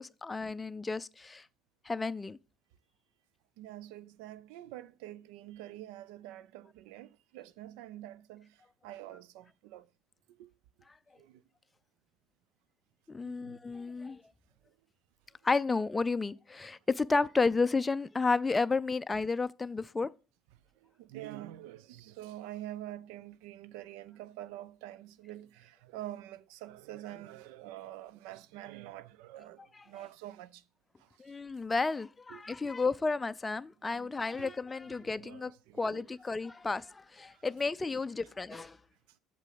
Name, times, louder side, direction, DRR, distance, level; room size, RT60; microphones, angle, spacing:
voice 1, 0.0-1.4 1.9-2.4 13.1-14.2 15.4-20.1 31.2-35.5 35.8-38.8, left 4 dB, 20° left, 0.4 m, -32 dB
voice 2, 3.6-9.9 10.4-10.5 11.2-11.4 13.2-13.6 20.8-30.6 31.0-31.1 32.3-32.7 33.9-34.5 35.0-36.0 37.3-37.4 38.5-38.6, right 14 dB, 70° right, 0.5 m, -47 dB
8.0 x 6.8 x 4.0 m
hypercardioid pair, 60°, 0 cm